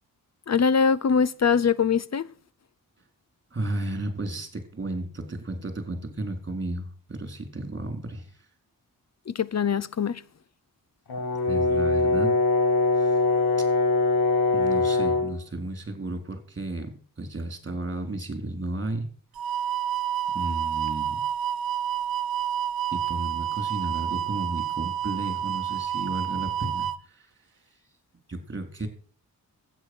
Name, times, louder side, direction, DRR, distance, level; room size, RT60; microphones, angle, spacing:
voice 1, 0.5-2.3 9.3-10.2, left 6 dB, 45° left, 0.8 m, -23 dB
voice 2, 3.5-8.4 11.4-12.3 13.0-13.1 14.5-19.1 20.3-21.2 22.9-27.3 28.3-28.9, right 2 dB, 30° right, 4.3 m, -33 dB
Brass instrument, 11.1-15.3, left 3 dB, 85° left, 2.4 m, -22 dB
sound 1, 19.4-27.0, right 10 dB, 75° right, 0.9 m, -29 dB
12.0 x 9.2 x 6.4 m
cardioid pair, 65°, 36 cm